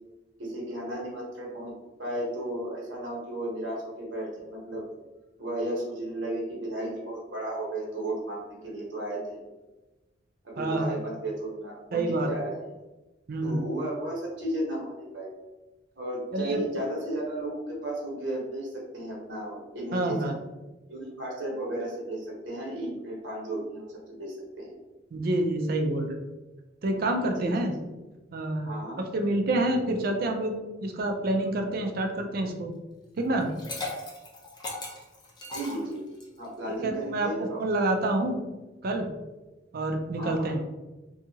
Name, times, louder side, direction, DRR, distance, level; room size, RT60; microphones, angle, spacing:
voice 1, 0.4-1.7 2.0-4.9 5.4-9.4 10.4-12.6 13.4-15.3 16.0-20.3 20.9-24.7 27.3-27.7 28.6-29.0 35.5-36.0 36.4-37.6 40.2-40.6, right 1 dB, 90° right, -3 dB, 1.0 m, -34 dB
voice 2, 10.6-11.0 11.9-12.3 13.3-13.6 16.3-16.6 19.9-20.3 25.1-26.2 26.8-27.7 28.3-28.7 29.0-30.5 30.8-32.7 33.2-33.5 36.7-38.4 38.8-39.1 39.7-40.7, right 1 dB, 55° right, 4 dB, 0.4 m, -27 dB
Liquid, 33.4-36.4, left 2 dB, 25° left, 0.6 m, -37 dB
2.7 x 2.4 x 2.7 m, 1.1 s
head